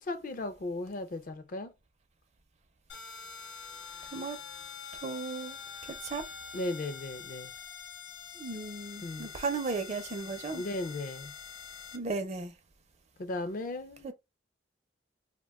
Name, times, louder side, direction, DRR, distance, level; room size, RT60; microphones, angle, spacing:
voice 1, 0.0-1.7 6.5-7.5 9.0-9.3 10.5-11.3 13.2-14.1, left 2 dB, 45° left, 0.4 m, -36 dB
sound 1, 2.9-12.0, left 6 dB, 70° left, 0.8 m, -45 dB
voice 2, 4.9-6.3 8.3-10.6 11.9-12.5 14.0-14.1, right 4 dB, 35° right, 0.5 m, -36 dB
2.5 x 2.2 x 3.4 m
head